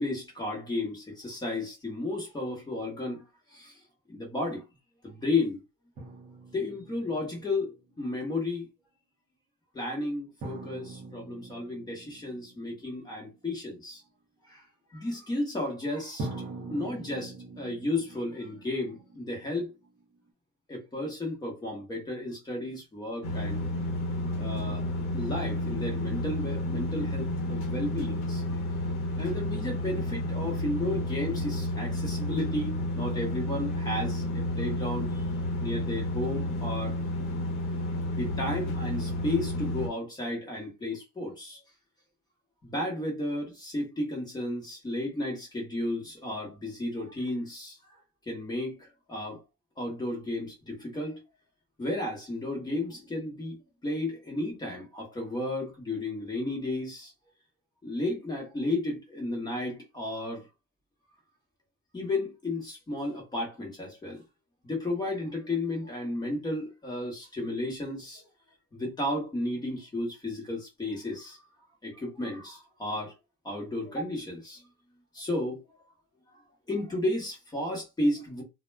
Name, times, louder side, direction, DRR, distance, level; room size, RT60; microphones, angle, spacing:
voice 1, 0.0-3.2 3.5-3.7 4.1-4.6 5.0-5.6 6.5-8.7 9.7-14.0 14.5-14.6 14.9-19.7 20.7-23.6 24.4-24.8 25.1-28.4 29.2-35.1 35.6-36.9 38.2-41.6 42.7-47.8 48.3-49.4 49.8-51.2 51.8-57.1 57.8-60.4 61.9-64.2 64.6-68.2 68.7-71.4 71.8-73.1 73.4-74.6 75.1-75.6 76.7-78.4, left 2 dB, 10° left, 0.7 m, -33 dB
sound 1, 6.0-7.8 10.4-13.3 16.2-20.0, right 2 dB, 20° right, 0.3 m, -43 dB
sound 2, 23.2-39.9, left 1 dB, 40° left, 0.8 m, -31 dB
2.1 x 2.1 x 3.1 m
cardioid pair, 155°, 45 cm